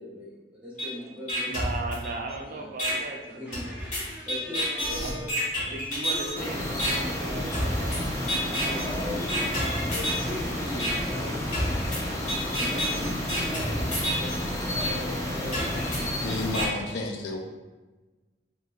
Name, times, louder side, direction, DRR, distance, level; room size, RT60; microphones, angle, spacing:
voice 1, 0.0-1.6 2.4-2.7 3.2-6.4 7.3-7.7 8.5-11.9 12.4-16.5, left 1 dB, 10° right, -6 dB, 0.8 m, -39 dB
sound 1, 0.8-0.9 1.3-2.3 2.8-2.9 3.5-6.4 6.8-6.9 7.5-8.0 8.3-8.9 9.3-10.3 10.8-10.9 11.5-14.4 14.8-14.9 15.5-16.7, equal, 45° left, 1.0 m, -29 dB
voice 2, 1.5-3.8 5.0-5.1 5.5-9.9, right 3 dB, 50° right, 2 dB, 0.3 m, -38 dB
sound 2, 6.3-16.7, left 1 dB, 20° left, 0.5 m, -31 dB
voice 3, 16.2-17.4, left 2 dB, 75° left, 3 dB, 0.4 m, -31 dB
2.7 x 2.7 x 2.3 m, 1.2 s
head